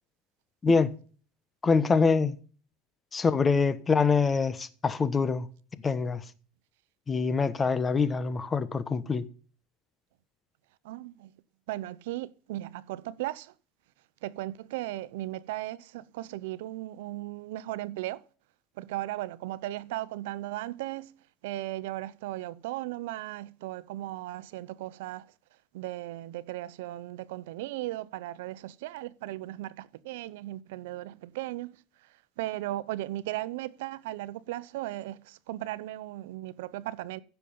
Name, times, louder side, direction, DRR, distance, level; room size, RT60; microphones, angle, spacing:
voice 1, 1.6-2.4 3.1-5.5 5.8-6.2 7.1-9.2, left 4 dB, 15° left, 1.1 m, -25 dB
voice 2, 10.8-11.3 11.7-13.5 14.2-18.2 18.8-21.1 21.4-25.2 25.7-31.8 32.4-37.2, right 16 dB, 80° right, 0.7 m, -36 dB
15.5 x 7.1 x 5.5 m
supercardioid pair, 145°, 0 cm